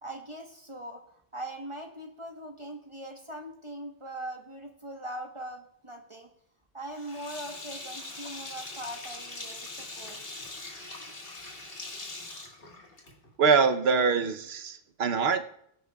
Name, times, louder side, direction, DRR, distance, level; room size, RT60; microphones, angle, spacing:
voice 1, 0.0-6.3 6.7-10.2, right 1 dB, 30° right, 3 dB, 1.2 m, -41 dB
Sink (filling or washing), 6.9-13.3, left 2 dB, 65° left, 1.9 m, -42 dB
voice 2, 13.4-15.4, right 5 dB, 75° right, 9 dB, 1.1 m, -24 dB
18.5 x 10.0 x 2.3 m, 0.69 s
omnidirectional pair, 1.0 m